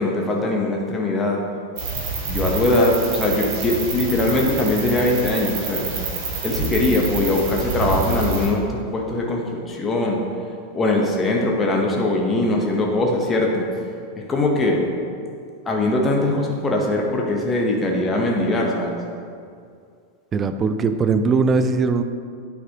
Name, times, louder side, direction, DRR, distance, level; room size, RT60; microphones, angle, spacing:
voice 1, 0.0-1.4 2.3-6.1 6.4-10.2 10.7-13.7 14.2-14.9 15.7-19.0, left 2 dB, 20° left, -1 dB, 1.0 m, -21 dB
sound 1, 1.8-8.5, right 3 dB, 45° right, 1.6 m, -27 dB
voice 2, 20.3-22.0, right 4 dB, 25° right, 10 dB, 0.4 m, -20 dB
9.7 x 5.9 x 2.9 m, 2.3 s
figure-of-eight pair, 90°, 0 cm